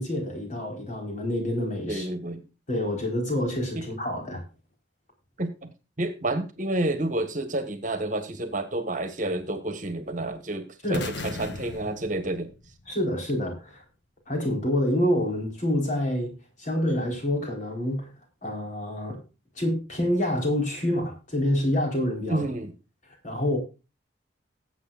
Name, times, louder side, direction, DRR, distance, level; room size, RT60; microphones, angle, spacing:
voice 1, 0.0-2.1 2.7-4.4 10.8-11.1 12.9-13.8 14.3-16.3 16.6-18.1 18.4-19.2 19.6-22.4 23.2-23.6, left 1 dB, 40° left, 4.4 m, -27 dB
voice 2, 1.9-2.4 3.8-3.9 5.4-5.7 6.0-12.5 22.3-22.7, right 1 dB, 40° right, 1.5 m, -29 dB
sound 1, 10.9-13.0, left 3 dB, 70° left, 1.2 m, -37 dB
19.0 x 8.2 x 2.5 m
head